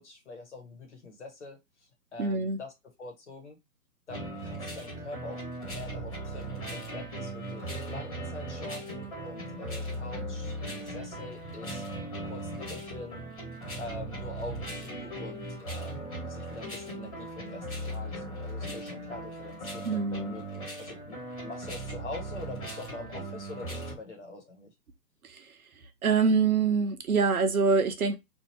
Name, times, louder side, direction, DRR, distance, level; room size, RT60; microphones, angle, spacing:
voice 1, 0.0-1.6 2.1-2.7 3.0-3.6 4.1-11.8 12.2-13.2 13.8-24.7, left 2 dB, 45° left, 1.2 m, -44 dB
voice 2, 2.2-2.6 19.8-20.4 25.2-25.5 26.0-28.2, right 5 dB, 60° right, 0.9 m, -25 dB
sound 1, 4.1-23.9, right 1 dB, 20° left, 1.3 m, -38 dB
2.9 x 2.7 x 4.3 m
hypercardioid pair, 165°, 49 cm